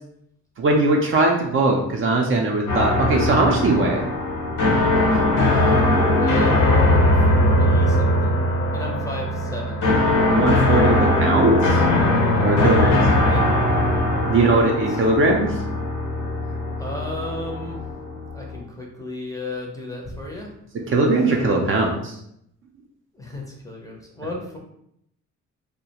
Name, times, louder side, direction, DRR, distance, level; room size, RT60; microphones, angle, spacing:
voice 1, 0.6-4.1 10.3-11.8 12.4-13.0 14.3-15.5 20.9-21.9, right 2 dB, 45° right, 1 dB, 0.5 m, -19 dB
sound 1, 2.7-18.6, left 1 dB, 70° left, 0.7 m, -20 dB
voice 2, 5.1-8.4 8.7-9.8 13.2-13.4 14.4-15.0 16.8-17.8 18.3-20.5 21.7-21.9 23.1-24.6, left 1 dB, 10° left, -2 dB, 0.5 m, -33 dB
2.3 x 2.1 x 2.8 m, 0.75 s
cardioid pair, 90°, 30 cm